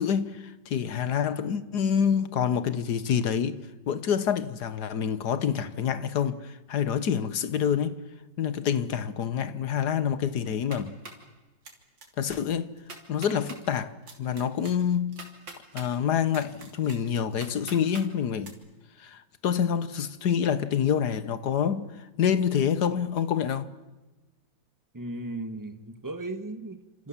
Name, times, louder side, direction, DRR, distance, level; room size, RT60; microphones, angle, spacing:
voice 1, 0.0-3.6 3.9-8.0 8.4-11.0 12.2-12.7 13.1-13.9 14.2-15.1 15.7-18.6 19.0-23.7, left 8 dB, 65° left, 1.6 m, -27 dB
sound 1, 10.5-11.3 11.6-12.1 12.3-12.4 12.8-13.6 14.1-15.9 16.3-18.1 18.4-18.5, right 3 dB, 85° right, 3.8 m, -44 dB
voice 2, 24.9-27.1, right 2 dB, 10° right, 1.4 m, -36 dB
28.0 x 27.5 x 7.3 m
omnidirectional pair, 2.0 m